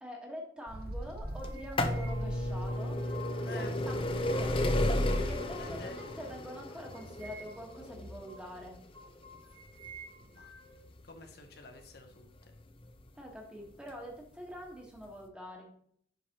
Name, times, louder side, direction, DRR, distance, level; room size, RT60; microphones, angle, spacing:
voice 1, 0.0-2.9 3.5-4.6 5.3-8.8 13.1-15.7, equal, 5° right, -1 dB, 1.3 m, -45 dB
Bird, 0.7-3.1, right 1 dB, 55° right, 0.7 m, -41 dB
sound 1, 1.0-3.5 3.9-4.7 5.0-6.4 6.9-7.8 8.3-8.5 8.9-10.8, right 1 dB, 90° right, 1.3 m, -52 dB
sound 2, 1.4-13.1 13.9-14.0 15.0-15.1 15.2-15.3, left 1 dB, 30° left, 0.6 m, -33 dB
voice 2, 5.6-6.0 10.2-10.5 11.0-12.3, left 3 dB, 55° left, 4 dB, 0.8 m, -49 dB
7.9 x 5.8 x 2.9 m, 0.64 s
head